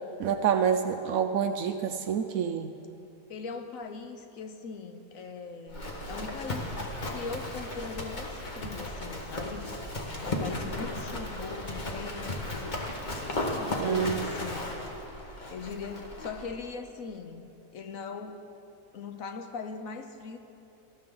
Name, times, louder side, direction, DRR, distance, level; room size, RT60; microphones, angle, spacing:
voice 1, 0.2-2.7 13.8-14.2, right 7 dB, 70° right, 7 dB, 0.9 m, -27 dB
voice 2, 3.3-6.8 7.1-9.7 10.2-12.9 13.5-14.7 15.5-18.4 18.9-20.4, left 4 dB, 65° left, 7 dB, 1.0 m, -40 dB
Livestock farm animals working animals, 5.7-16.5, left 1 dB, 30° left, 1.3 m, -35 dB
18.5 x 13.0 x 3.8 m, 2.8 s
omnidirectional pair, 1.8 m